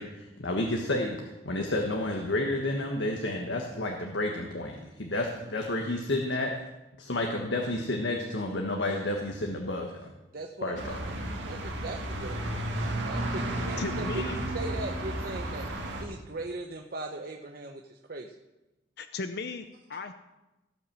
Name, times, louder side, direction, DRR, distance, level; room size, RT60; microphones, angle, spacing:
voice 1, 0.0-6.5 7.0-10.1 10.6-11.0, left 1 dB, 90° left, 2 dB, 1.4 m, -31 dB
voice 2, 10.3-11.2 11.5-12.7 13.0-15.7 16.0-18.4, right 2 dB, 55° right, 2 dB, 0.8 m, -39 dB
sound 1, 10.8-16.0, right 1 dB, 90° right, 2.2 m, -33 dB
voice 3, 13.8-14.4 19.0-19.6 19.9-20.1, left 3 dB, 60° left, 9 dB, 0.6 m, -35 dB
17.0 x 5.8 x 7.5 m, 1.0 s
head